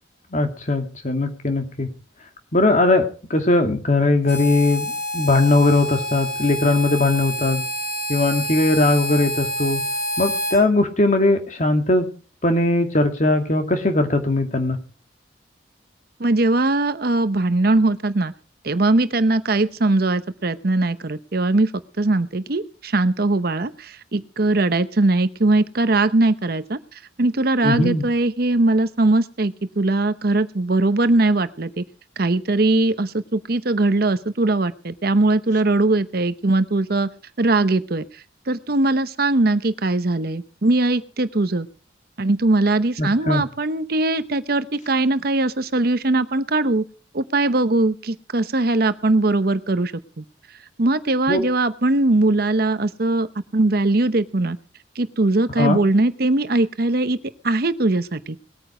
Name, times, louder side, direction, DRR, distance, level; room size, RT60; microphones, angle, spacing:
voice 1, 0.3-1.9 2.5-3.0 3.3-7.6 8.1-9.8 10.2-12.1 12.4-14.8 27.6-28.0 43.0-43.4 51.3-51.4 55.6-55.8, left 2 dB, 40° left, 5 dB, 2.1 m, -19 dB
Harmonica, 4.3-10.6, equal, 55° left, 4.0 m, -28 dB
voice 2, 16.2-18.3 18.6-21.7 22.0-31.8 32.2-37.1 37.4-41.7 42.2-46.8 47.1-50.2 50.8-53.3 53.5-54.6 55.0-57.2 57.4-58.4, right 2 dB, 55° right, 12 dB, 0.8 m, -20 dB
19.5 x 9.2 x 5.0 m, 0.39 s
head